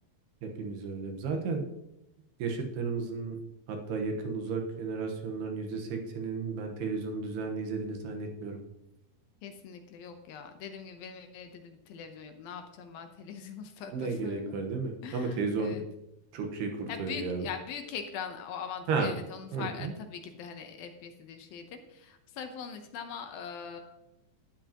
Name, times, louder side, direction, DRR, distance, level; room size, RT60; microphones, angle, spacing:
voice 1, 0.4-1.7 2.4-3.4 3.7-8.6 13.9-15.8 16.3-17.5 18.9-19.1 19.5-19.9, right 4 dB, 90° right, 3 dB, 3.3 m, -33 dB
voice 2, 9.4-14.5 15.0-15.8 16.9-23.8, left 7 dB, 75° left, 6 dB, 2.5 m, -42 dB
12.5 x 10.5 x 2.9 m, 0.87 s
omnidirectional pair, 4.5 m